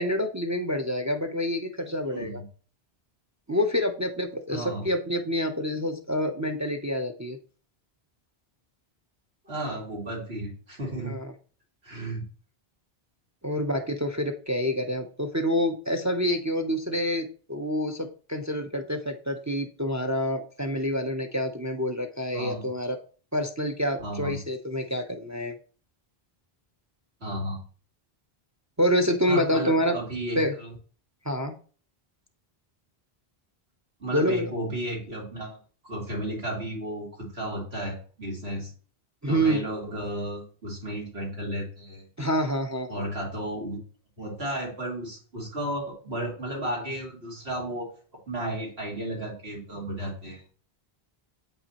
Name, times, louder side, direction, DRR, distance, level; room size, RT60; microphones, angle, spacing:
voice 1, 0.0-2.4 3.5-7.4 11.0-11.3 13.4-23.0 23.3-25.5 28.8-29.9 30.4-30.5 31.3-31.5 34.1-34.5 39.2-39.6 42.2-43.1, equal, 25° right, 6 dB, 0.4 m, -27 dB
voice 2, 2.1-2.5 4.5-4.9 9.4-11.2 11.8-12.2 22.3-22.6 24.0-24.4 27.2-27.6 29.3-30.7 34.0-35.6 35.8-38.7 39.3-42.0 42.9-43.8 44.2-47.9 48.3-50.4, right 1 dB, 90° right, -3 dB, 2.8 m, -33 dB
8.1 x 5.5 x 2.9 m, 0.40 s
omnidirectional pair, 1.0 m